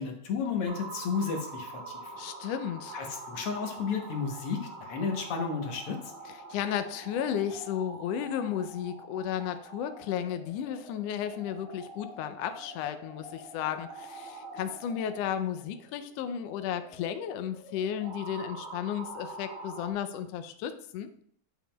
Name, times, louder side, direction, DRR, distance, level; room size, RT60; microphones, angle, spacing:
voice 1, 0.0-2.1 2.9-6.1, left 5 dB, 65° left, 2 dB, 1.6 m, -33 dB
sound 1, 0.7-19.9, right 2 dB, 70° right, 4.1 m, -45 dB
voice 2, 2.2-3.0 6.3-21.1, left 9 dB, 85° left, 9 dB, 1.4 m, -34 dB
11.0 x 7.1 x 2.2 m, 0.63 s
omnidirectional pair, 3.4 m